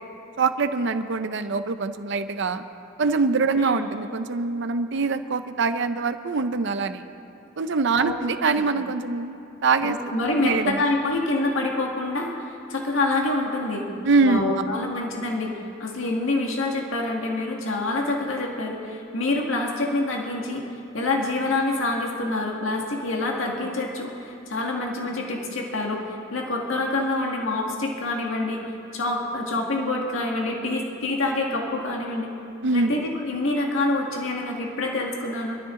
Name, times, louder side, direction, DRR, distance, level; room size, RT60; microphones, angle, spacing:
voice 1, 0.4-2.6 3.0-7.0 7.6-10.0 10.4-10.8 14.0-14.4 32.6-32.9, right 4 dB, 65° right, 10 dB, 0.6 m, -24 dB
voice 2, 9.8-13.8 14.2-15.5 15.8-20.6 20.9-28.6 28.9-32.3 32.7-35.6, left 2 dB, 85° left, 0 dB, 1.8 m, -26 dB
24.0 x 13.0 x 3.8 m, 2.7 s
head